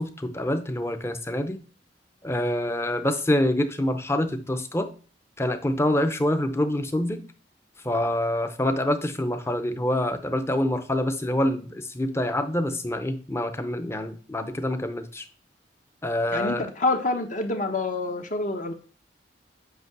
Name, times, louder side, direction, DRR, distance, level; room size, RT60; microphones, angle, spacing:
voice 1, 0.0-1.6 2.2-4.9 5.4-7.3 7.8-15.2 16.0-16.7, left 1 dB, 15° left, 0.7 m, -26 dB
voice 2, 16.3-18.7, left 2 dB, 45° left, 1.0 m, -27 dB
8.1 x 2.9 x 6.0 m
head